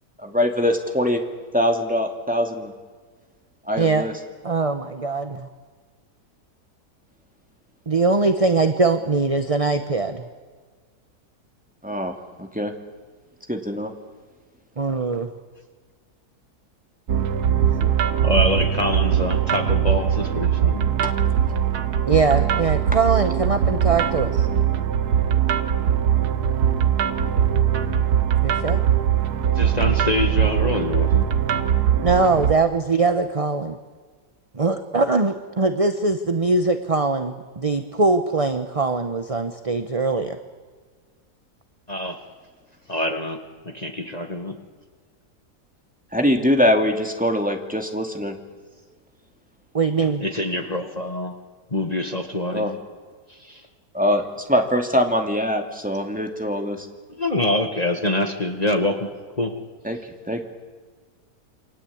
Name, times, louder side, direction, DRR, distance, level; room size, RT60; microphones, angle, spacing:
voice 1, 0.2-1.2 1.5-2.7 3.7-4.1 11.8-12.7 13.5-13.9 21.0-21.1 46.1-48.4 52.5-52.7 53.9-54.2 54.5-56.9 59.8-60.4, equal, 5° right, 3 dB, 2.5 m, -23 dB
voice 2, 3.8-4.1 4.4-5.5 7.9-10.2 14.8-15.3 22.1-24.5 28.4-28.8 32.0-33.8 34.5-40.4 49.7-50.2, right 3 dB, 25° right, 8 dB, 1.0 m, -22 dB
sound 1, 17.1-32.5, right 9 dB, 75° right, 1.7 m, -21 dB
voice 3, 18.2-20.9 29.5-31.3 41.9-42.2 42.9-43.4 43.7-44.6 50.2-51.3 51.7-52.8 53.3-53.6 57.2-59.1 59.4-59.5, left 1 dB, 25° left, 5 dB, 2.0 m, -25 dB
29.0 x 23.5 x 8.7 m, 1.5 s
omnidirectional pair, 1.7 m